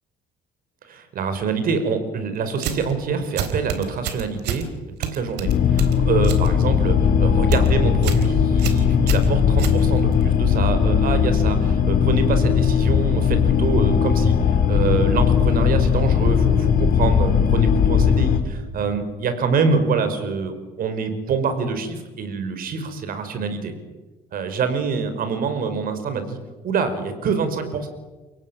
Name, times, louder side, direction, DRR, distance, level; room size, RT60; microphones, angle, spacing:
voice 1, 0.9-4.7 5.0-23.7 24.3-26.4 26.6-27.9, right 5 dB, 60° right, 9 dB, 5.2 m, -25 dB
sound 1, 2.5-2.9 3.4-4.7 5.0-6.5 6.8-7.1 7.4-7.7 8.0-8.3 8.6-10.2, right 10 dB, 85° right, 3.7 m, -29 dB
sound 2, 5.4-18.4, left 7 dB, 65° left, 3.2 m, -18 dB
30.0 x 18.0 x 9.0 m, 1.2 s
cardioid pair, 110°, 17 cm